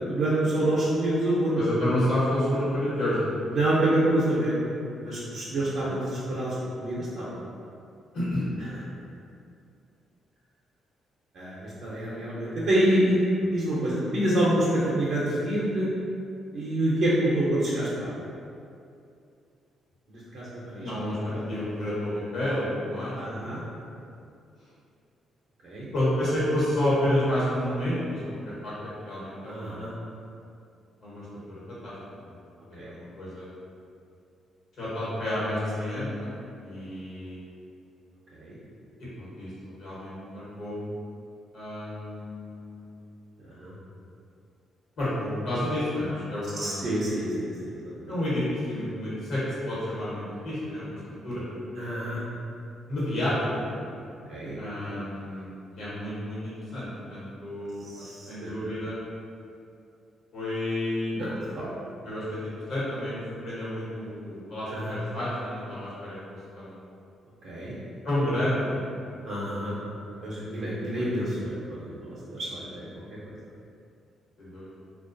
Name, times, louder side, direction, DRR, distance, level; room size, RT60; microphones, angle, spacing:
voice 1, 0.0-1.6 3.5-4.6 5.0-7.3 11.3-15.9 16.5-18.1 20.1-21.4 23.1-23.6 25.6-25.9 29.5-29.9 32.8-32.9 38.3-38.6 43.4-43.7 46.5-48.1 51.7-52.2 54.3-54.5 57.8-58.8 61.1-61.7 64.7-64.9 67.4-67.7 69.2-69.7 70.2-73.3, right 1 dB, 70° right, -8 dB, 0.5 m, -27 dB
voice 2, 1.6-3.2 5.6-5.9 8.1-8.8 13.4-13.5 20.8-23.8 25.9-28.7 29.0-30.0 31.0-31.9 32.2-32.4 32.7-33.5 34.8-36.3 36.6-37.4 39.2-39.5 39.8-40.8 41.5-43.0 45.0-46.8 48.1-51.4 52.9-53.8 54.5-55.5 55.8-59.0 60.3-61.1 62.0-66.8 68.0-68.9 70.1-70.3 70.9-71.2 74.4-74.7, left 1 dB, 70° left, -9 dB, 1.0 m, -30 dB
2.4 x 2.2 x 2.5 m, 2.5 s
cardioid pair, 90°, 0 cm